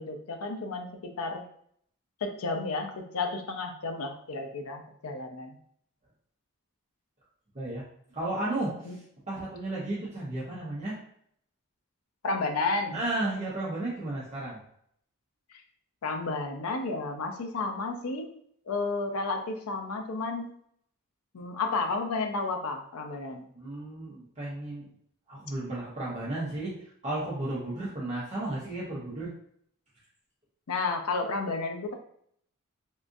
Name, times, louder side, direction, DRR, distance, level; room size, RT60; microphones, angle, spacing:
voice 1, 0.0-1.4 2.2-5.6 8.8-9.0 12.2-13.0 16.0-18.3 18.7-20.5 21.3-23.5 30.7-31.9, left 3 dB, 75° left, 5 dB, 0.5 m, -32 dB
voice 2, 8.1-11.0 12.9-14.6 23.5-24.9 25.3-26.7 27.0-29.3, right 2 dB, 30° right, -7 dB, 0.8 m, -33 dB
3.6 x 2.5 x 2.5 m, 0.67 s
head